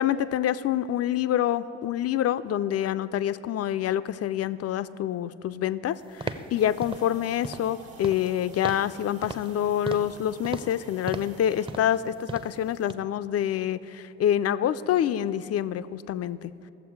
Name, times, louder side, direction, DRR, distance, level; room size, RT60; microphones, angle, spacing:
voice 1, 0.0-16.5, left 11 dB, 40° left, 14 dB, 0.4 m, -27 dB
sound 1, 6.2-6.5 6.8-7.1 7.4-7.7 8.0-8.3 8.6-8.9 9.2-9.5 9.9-10.2 10.4-10.8 11.1-11.4 11.7-12.0 12.3-12.6 12.9-13.0, right 2 dB, 15° right, 0.7 m, -36 dB
sound 2, 6.5-11.7, right 5 dB, 60° right, 1.5 m, -51 dB
16.5 x 7.0 x 4.6 m, 2.9 s
hypercardioid pair, 45°, 40 cm